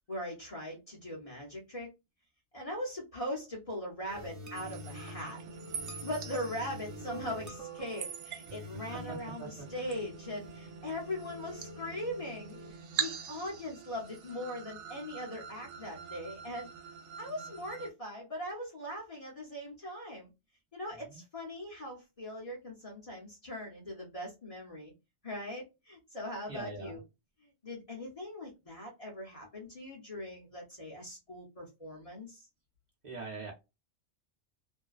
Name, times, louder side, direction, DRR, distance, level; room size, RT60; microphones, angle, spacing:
voice 1, 0.1-1.9 2.5-5.4 6.0-12.6 13.0-16.7 17.2-20.3 20.7-24.9 25.2-27.0 27.6-32.4, left 1 dB, 35° left, -3 dB, 0.7 m, -40 dB
sound 1, 4.1-12.7, equal, 25° right, 0.4 m, -48 dB
sound 2, 4.6-17.9, right 7 dB, 85° right, 0.9 m, -44 dB
voice 2, 8.9-9.5 21.1-21.2 26.5-27.0 33.0-33.5, right 4 dB, 45° right, -2 dB, 0.9 m, -42 dB
2.5 x 2.1 x 2.3 m, 0.24 s
omnidirectional pair, 1.2 m